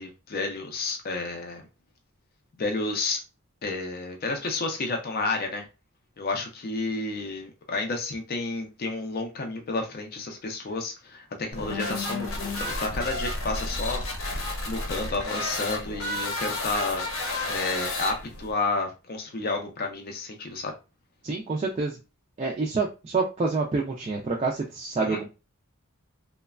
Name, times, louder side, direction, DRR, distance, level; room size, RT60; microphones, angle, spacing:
voice 1, 0.0-1.7 2.6-3.2 3.6-5.7 6.2-12.3 12.8-17.1 17.4-20.7 25.0-25.2, left 3 dB, 45° left, 3 dB, 0.4 m, -31 dB
sound 1, 11.5-18.5, left 2 dB, 70° left, 0.7 m, -31 dB
voice 2, 21.2-22.0 22.4-25.3, right 4 dB, 30° right, -1 dB, 0.3 m, -27 dB
3.0 x 2.1 x 2.3 m, 0.29 s
head